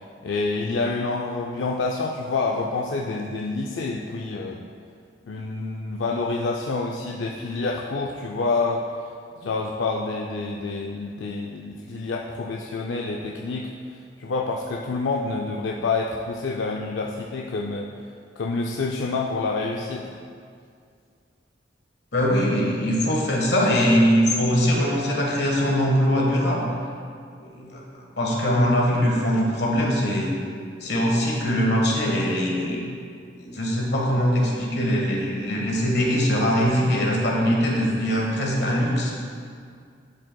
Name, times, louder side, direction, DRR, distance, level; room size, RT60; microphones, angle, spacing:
voice 1, 0.2-4.6 5.2-8.8 9.4-17.9 18.4-20.1, left 3 dB, 90° left, -1 dB, 0.4 m, -28 dB
voice 2, 22.1-26.6 27.4-30.3 30.8-32.8 33.4-39.1, equal, 65° left, -2 dB, 1.4 m, -22 dB
11.0 x 5.4 x 2.3 m, 2.2 s
head